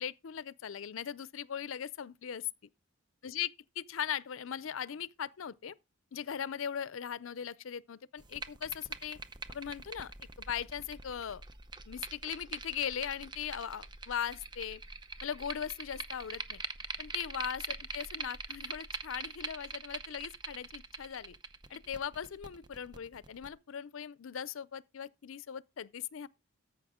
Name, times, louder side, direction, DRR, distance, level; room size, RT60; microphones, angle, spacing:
voice 1, 0.0-2.5 3.2-3.5 3.8-5.7 6.1-9.2 9.5-11.4 11.9-14.8 15.2-16.6 17.0-21.3 21.7-26.3, left 8 dB, 80° left, 0.5 m, -39 dB
sound 1, 8.2-23.5, right 4 dB, 20° right, 0.6 m, -44 dB
13.5 x 5.9 x 3.6 m
head